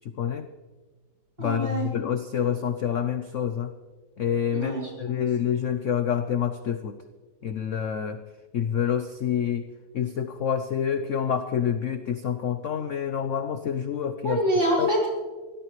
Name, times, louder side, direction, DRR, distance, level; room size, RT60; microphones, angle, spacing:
voice 1, 0.2-0.5 1.4-3.7 4.2-7.0 7.4-8.2 8.5-9.7 9.9-14.4 14.8-14.9, left 8 dB, 60° left, 9 dB, 0.8 m, -27 dB
voice 2, 1.4-1.9 4.5-5.2 14.2-15.1, equal, 35° right, -3 dB, 6.5 m, -26 dB
24.0 x 17.0 x 3.2 m, 1.3 s
omnidirectional pair, 2.1 m